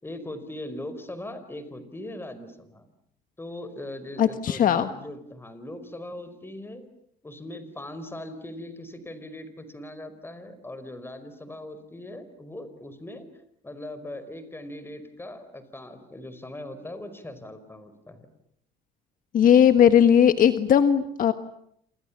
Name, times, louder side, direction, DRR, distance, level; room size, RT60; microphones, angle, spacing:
voice 1, 0.0-2.9 3.4-6.8 7.2-13.3 13.6-18.3, left 1 dB, 15° left, 12 dB, 5.0 m, -40 dB
voice 2, 4.2-4.9 19.3-21.3, left 9 dB, 55° left, 10 dB, 1.5 m, -18 dB
28.0 x 28.0 x 7.4 m, 0.70 s
cardioid pair, 110°, 17 cm